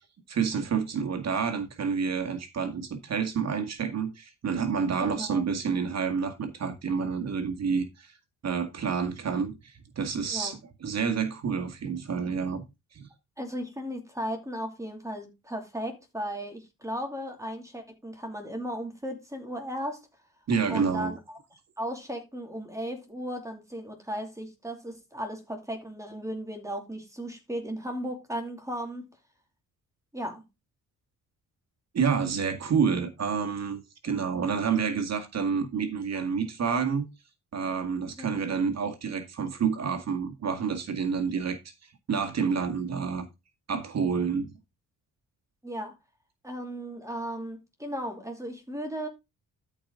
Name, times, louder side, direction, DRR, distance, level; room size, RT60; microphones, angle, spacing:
voice 1, 0.3-8.1 8.4-10.6 10.8-12.6 12.9-13.1 20.5-21.1 31.9-37.1 37.5-41.6 42.1-43.3 43.7-44.5, right 6 dB, 55° right, 1.9 m, -28 dB
voice 2, 5.0-5.4 10.3-10.6 13.4-20.0 20.7-29.1 30.1-30.4 38.2-38.3 45.6-45.9 46.4-49.1, equal, 10° right, 2.6 m, -36 dB
13.0 x 5.0 x 3.8 m
cardioid pair, 105°, 32 cm